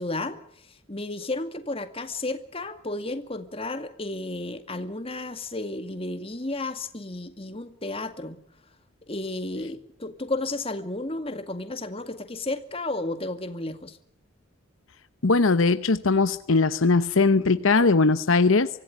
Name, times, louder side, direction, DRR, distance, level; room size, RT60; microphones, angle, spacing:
voice 1, 0.0-8.4 9.1-14.0, left 2 dB, 25° left, 2.2 m, -33 dB
voice 2, 15.2-18.7, left 3 dB, 70° left, 0.9 m, -20 dB
25.0 x 16.0 x 9.5 m
head